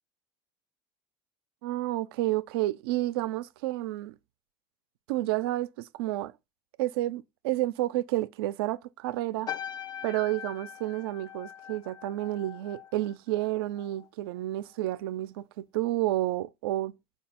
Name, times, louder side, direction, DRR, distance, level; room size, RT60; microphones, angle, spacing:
voice 1, 1.6-4.1 5.1-6.3 6.8-9.5 10.0-16.9, right 16 dB, 75° right, 0.4 m, -30 dB
sound 1, 9.5-14.1 14.4-14.8, left 9 dB, 30° left, 0.4 m, -42 dB
4.4 x 2.3 x 4.2 m
hypercardioid pair, 90°, 13 cm